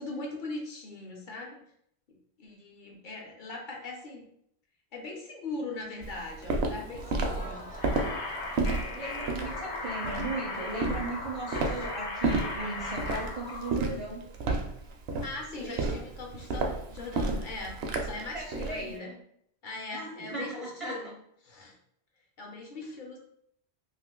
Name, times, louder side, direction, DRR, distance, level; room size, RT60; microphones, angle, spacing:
voice 1, 0.0-1.6 2.4-4.2 4.9-7.6 11.6-11.9 15.2-17.7 18.0-19.2 19.6-21.2 21.4-21.7 22.4-23.2, left 3 dB, 55° left, 0 dB, 0.8 m, -40 dB
Walk footsteps, 6.0-18.8, right 3 dB, 70° right, 0.8 m, -32 dB
Crowd, 6.8-12.2, equal, 15° left, 0.3 m, -47 dB
sound 1, 7.8-13.7, left 2 dB, 90° left, 0.9 m, -37 dB
voice 2, 8.8-14.2 15.5-15.8 18.3-19.1 19.9-21.0, right 2 dB, 40° right, -3 dB, 0.5 m, -37 dB
2.6 x 2.5 x 3.6 m, 0.70 s
omnidirectional pair, 1.1 m